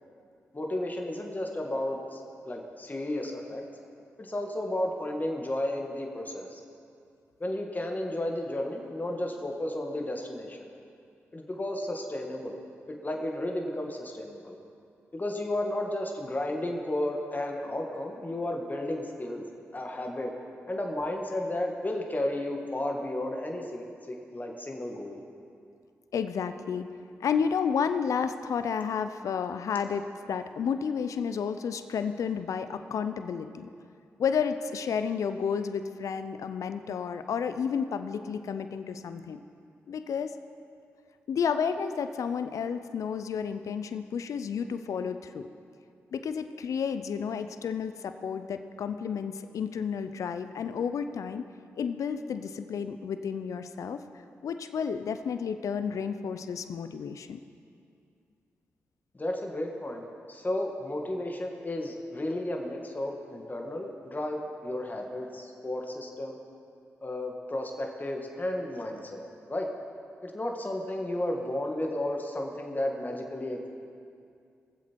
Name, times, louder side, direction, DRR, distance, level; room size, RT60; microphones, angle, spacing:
voice 1, 0.5-3.6 4.2-6.6 7.4-10.7 11.3-12.6 12.9-14.6 15.1-19.5 19.7-20.3 20.7-25.2 59.1-66.4 67.0-69.2 69.5-69.7 70.2-73.6, left 1 dB, 30° left, 1 dB, 1.9 m, -33 dB
voice 2, 26.1-33.7 34.2-39.4 39.9-40.3 41.3-45.5 46.1-51.4 51.8-54.0 54.4-57.4, left 6 dB, 70° left, 10 dB, 0.5 m, -31 dB
20.5 x 7.6 x 4.6 m, 2.4 s
supercardioid pair, 40°, 6 cm